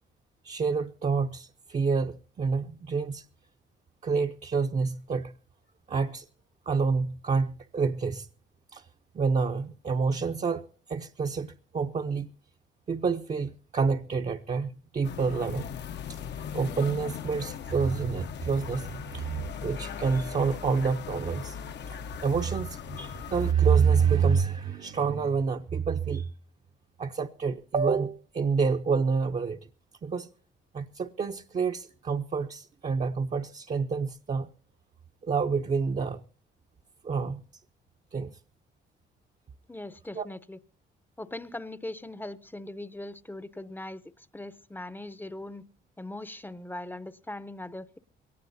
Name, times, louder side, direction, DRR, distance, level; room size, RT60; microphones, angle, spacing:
voice 1, 0.4-3.3 4.0-5.3 5.9-6.3 6.7-8.3 8.7-8.9 9.1-10.6 10.9-12.3 12.9-15.7 16.1-16.2 16.5-21.6 21.9-26.3 27.0-29.6 30.0-30.3 30.7-34.5 35.2-36.2 37.0-37.4 38.1-38.3 40.1-40.3, right 5 dB, 35° right, 0.7 m, -28 dB
sound 1, 15.0-23.5, left 8 dB, 60° left, 0.9 m, -39 dB
voice 2, 39.7-40.6 41.2-45.6 46.0-48.0, left 1 dB, 10° left, 0.7 m, -40 dB
22.0 x 18.0 x 2.7 m
cardioid pair, 90°, 20 cm